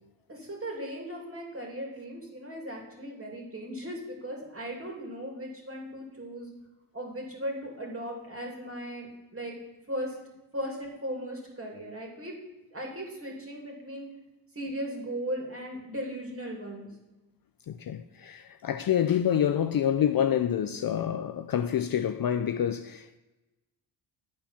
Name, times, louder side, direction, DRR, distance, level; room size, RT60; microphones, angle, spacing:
voice 1, 0.3-6.5 6.9-9.5 9.9-10.2 10.5-12.3 12.7-14.1 14.5-16.9, equal, 30° right, 2.7 m, -37 dB
voice 2, 17.7-23.2, left 9 dB, 50° left, 0.5 m, -27 dB
9.4 x 4.4 x 5.7 m
cardioid pair, 70°, 48 cm